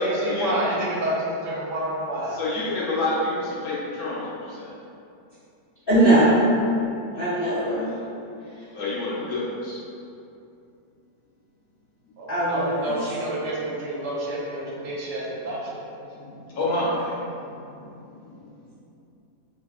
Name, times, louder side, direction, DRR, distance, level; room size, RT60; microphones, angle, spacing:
voice 1, 0.0-2.5 12.2-15.8, right 1 dB, 75° right, -5 dB, 1.3 m, -29 dB
voice 2, 2.3-4.7 8.7-9.8 16.2-17.5 17.8-17.9, left 2 dB, 65° left, -7 dB, 1.0 m, -28 dB
voice 3, 5.9-6.5 7.1-7.9 12.3-12.9, right 1 dB, 45° left, -13 dB, 0.7 m, -20 dB
3.9 x 2.4 x 3.4 m, 2.7 s
omnidirectional pair, 1.9 m